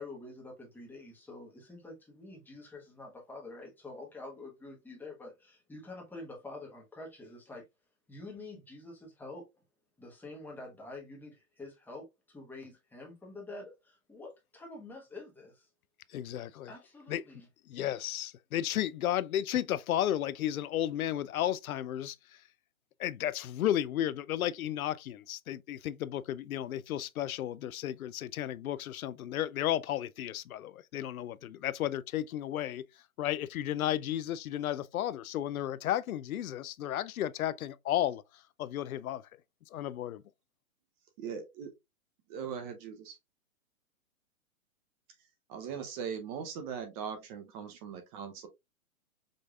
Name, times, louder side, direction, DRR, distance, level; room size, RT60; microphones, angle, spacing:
voice 1, 0.0-7.7 8.1-9.5 10.0-15.7 16.7-17.5, left 2 dB, 5° left, 1.3 m, -47 dB
voice 2, 16.1-16.7 17.1-17.2 17.7-22.2 23.0-32.8 33.2-38.2 38.6-39.2 39.7-40.2, left 12 dB, 80° left, 0.5 m, -33 dB
voice 3, 41.2-41.7 42.3-43.2 45.5-48.5, right 7 dB, 25° right, 0.7 m, -40 dB
5.2 x 3.3 x 2.4 m
hypercardioid pair, 140°, 42 cm